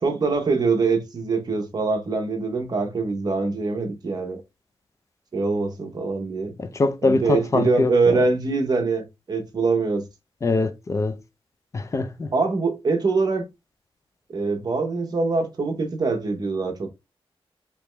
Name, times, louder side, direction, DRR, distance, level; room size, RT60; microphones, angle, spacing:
voice 1, 0.0-4.4 5.3-6.5 7.0-10.0 12.3-13.4 14.3-16.9, right 4 dB, 40° right, 0.9 m, -23 dB
voice 2, 6.6-8.2 10.4-11.2 11.7-12.3, left 3 dB, 30° left, 0.4 m, -23 dB
3.4 x 3.0 x 3.2 m
wide cardioid pair, 170°, 10 cm